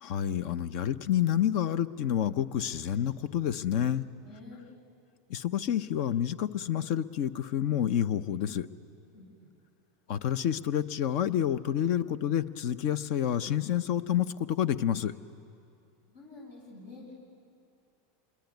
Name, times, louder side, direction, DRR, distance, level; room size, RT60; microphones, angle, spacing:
voice 1, 0.0-4.1 5.3-8.7 10.1-15.1, left 10 dB, 60° left, 13 dB, 0.8 m, -29 dB
voice 2, 4.2-4.6 9.1-9.5 16.1-17.1, left 2 dB, 80° left, -3 dB, 7.9 m, -48 dB
26.5 x 22.0 x 9.4 m, 2.5 s
hypercardioid pair, 115°, 0 cm